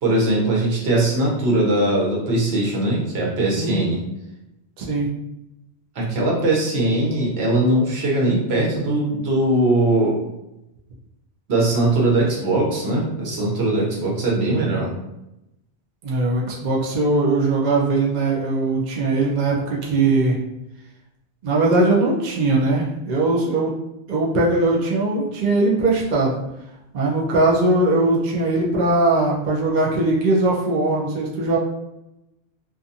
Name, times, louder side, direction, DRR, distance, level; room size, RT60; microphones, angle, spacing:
voice 1, 0.0-4.0 5.9-10.2 11.5-14.9, right 2 dB, 70° right, -3 dB, 1.0 m, -20 dB
voice 2, 3.5-3.9 4.8-5.2 16.0-20.4 21.4-23.8 24.1-26.4 26.9-31.6, right 2 dB, 50° right, -3 dB, 0.6 m, -20 dB
2.5 x 2.4 x 2.6 m, 0.88 s
omnidirectional pair, 1.1 m